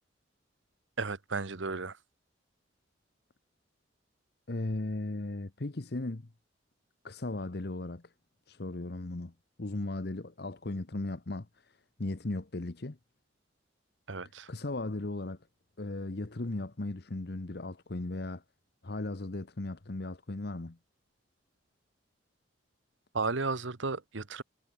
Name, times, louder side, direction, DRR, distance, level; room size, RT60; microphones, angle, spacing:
voice 1, 1.0-2.0 14.1-14.5 23.1-24.4, right 4 dB, 85° right, 1.3 m, -34 dB
voice 2, 4.5-6.2 7.0-8.0 8.5-9.3 9.6-13.0 14.5-15.4 15.8-18.4 18.8-20.8, left 2 dB, 60° left, 1.0 m, -36 dB
head